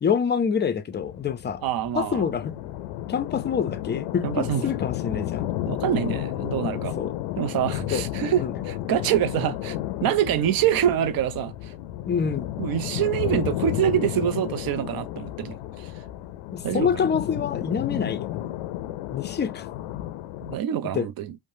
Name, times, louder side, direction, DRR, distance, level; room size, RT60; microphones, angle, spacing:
voice 1, 0.0-1.6 1.9-2.6 3.1-5.5 7.0-7.1 7.9-8.0 8.4-8.6 12.1-12.5 16.5-18.4 19.1-19.7 20.9-21.1, left 7 dB, 25° left, 0.4 m, -26 dB
sound 1, 0.9-20.6, left 14 dB, 90° left, 0.6 m, -32 dB
voice 2, 1.6-2.2 4.2-4.6 5.7-7.0 7.4-9.8 10.0-11.7 12.6-15.9 16.6-16.9 20.4-21.4, right 11 dB, 50° right, 0.5 m, -25 dB
3.1 x 2.1 x 2.6 m
cardioid pair, 100°, 45 cm